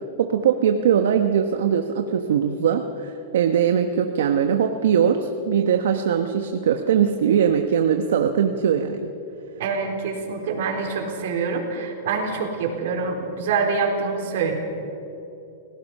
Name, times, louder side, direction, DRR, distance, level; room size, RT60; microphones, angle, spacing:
voice 1, 0.2-9.1, right 8 dB, 80° right, 6 dB, 1.2 m, -21 dB
voice 2, 9.6-14.6, right 5 dB, 65° right, 2 dB, 4.3 m, -25 dB
30.0 x 17.5 x 5.6 m, 2.9 s
supercardioid pair, 155°, 0 cm